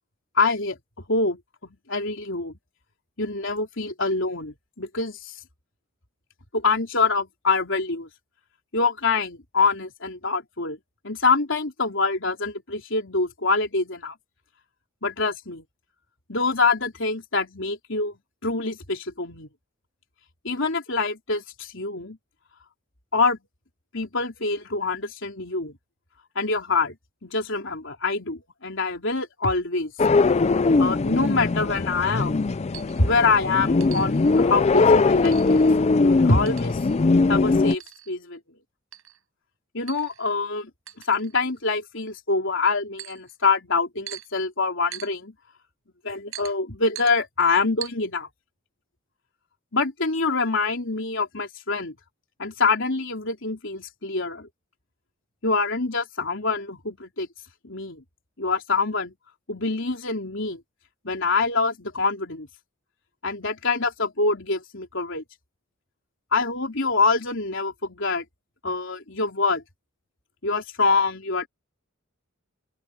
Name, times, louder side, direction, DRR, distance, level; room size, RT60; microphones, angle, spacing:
voice 1, 0.4-0.8 1.1-2.5 3.2-5.3 6.5-8.1 8.7-10.8 11.0-14.1 15.0-15.6 16.3-18.1 18.4-19.5 20.4-22.2 23.1-23.4 23.9-25.8 26.4-26.9 27.2-29.9 30.8-32.4 33.0-35.6 36.0-36.8 37.3-37.8 38.1-38.4 39.7-40.7 41.1-45.3 46.0-48.3 49.7-52.0 52.4-54.5 55.4-57.3 57.6-58.0 58.4-59.1 59.5-60.6 61.0-62.5 63.2-65.2 66.3-68.2 68.6-69.6 70.4-71.5, left 3 dB, 65° left, 3.9 m, -25 dB
sound 1, 30.0-37.8, left 3 dB, 30° left, 0.4 m, -20 dB
sound 2, 32.7-33.1 33.8-34.4 35.2-35.7 36.5-37.0 37.7-38.1 38.9-39.2 39.9-40.3 40.9-41.6 43.0-43.3 44.1-44.3 44.9-45.1 46.3-46.5 46.9-47.1 47.8-47.9, right 13 dB, 85° right, 5.6 m, -41 dB
open air
head